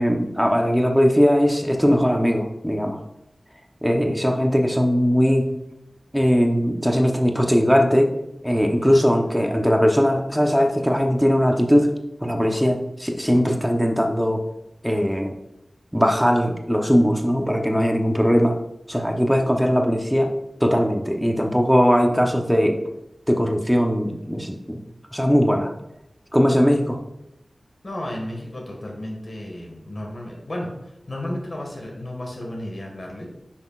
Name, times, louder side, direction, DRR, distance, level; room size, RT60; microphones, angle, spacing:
voice 1, 0.0-3.0 3.8-5.5 6.1-8.1 8.4-11.9 12.2-14.4 14.8-15.3 15.9-18.6 18.9-20.3 20.6-22.8 23.3-24.8 25.1-25.7 26.3-27.0, equal, ahead, 3 dB, 0.9 m, -19 dB
voice 2, 27.8-30.7 31.1-33.3, left 1 dB, 60° left, -1 dB, 1.6 m, -33 dB
9.6 x 6.0 x 2.4 m, 0.87 s
wide cardioid pair, 65°, 0 cm